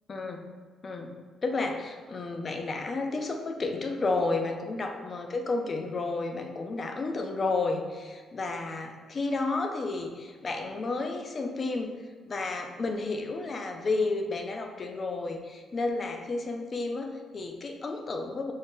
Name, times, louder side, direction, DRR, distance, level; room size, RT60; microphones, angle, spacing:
voice 1, 0.1-0.5 0.8-1.1 1.4-12.0 12.3-18.5, left 3 dB, 40° left, 5 dB, 0.4 m, -31 dB
3.8 x 2.0 x 3.6 m, 1.5 s
cardioid pair, 90°, 0 cm